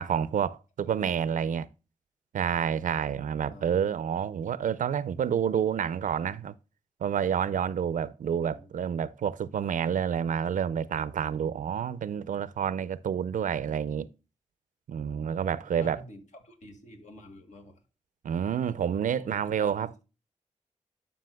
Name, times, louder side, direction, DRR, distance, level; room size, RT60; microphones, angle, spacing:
voice 1, 0.0-1.7 2.3-6.5 7.0-14.1 14.9-16.0 18.2-19.9, right 8 dB, 80° right, 0.5 m, -29 dB
voice 2, 0.8-1.2 3.5-3.7 8.4-8.7 15.8-17.8 19.2-19.9, left 1 dB, 65° left, 2.0 m, -49 dB
12.0 x 5.8 x 2.2 m
cardioid pair, 60°, 13 cm